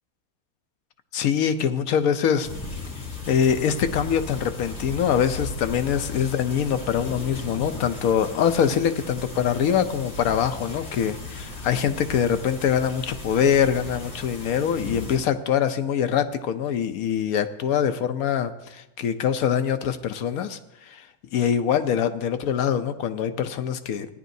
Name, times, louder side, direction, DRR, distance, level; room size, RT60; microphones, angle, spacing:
voice 1, 1.1-2.5 3.3-21.1 21.3-24.1, left 8 dB, 75° left, 9 dB, 1.1 m, -24 dB
sound 1, 2.4-15.2, left 2 dB, 50° left, 2.1 m, -36 dB
16.5 x 10.0 x 2.7 m, 0.92 s
omnidirectional pair, 1.6 m